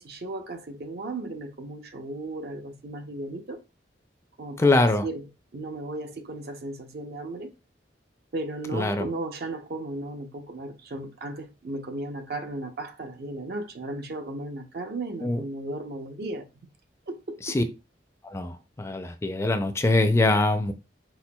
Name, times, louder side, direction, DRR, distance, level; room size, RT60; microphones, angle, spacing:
voice 1, 0.0-3.6 4.4-7.5 8.3-16.5 17.1-17.4, right 2 dB, 60° right, 0.6 m, -35 dB
voice 2, 4.6-5.1 8.7-9.1 15.2-15.4 17.4-17.6 18.3-20.7, left 2 dB, 15° left, 0.3 m, -23 dB
4.5 x 4.3 x 2.2 m
head